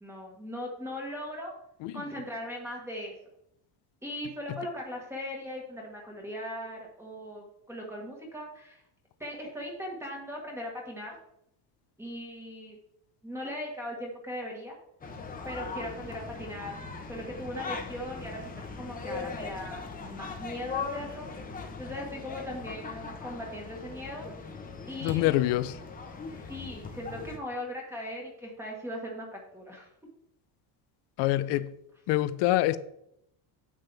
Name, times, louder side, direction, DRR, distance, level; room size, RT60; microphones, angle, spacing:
voice 1, 0.0-1.5 1.9-3.1 4.0-8.8 9.2-11.2 12.0-12.8 13.2-14.8 15.4-16.8 17.1-21.3 21.8-24.3 24.9-25.4 26.3-29.9, left 1 dB, 5° right, 1.4 m, -39 dB
sound 1, 15.0-27.4, left 4 dB, 15° left, 0.9 m, -40 dB
voice 2, 25.0-25.8 31.2-31.7 32.1-32.8, left 15 dB, 60° left, 0.6 m, -25 dB
9.6 x 7.4 x 3.4 m
cardioid pair, 175°, 48 cm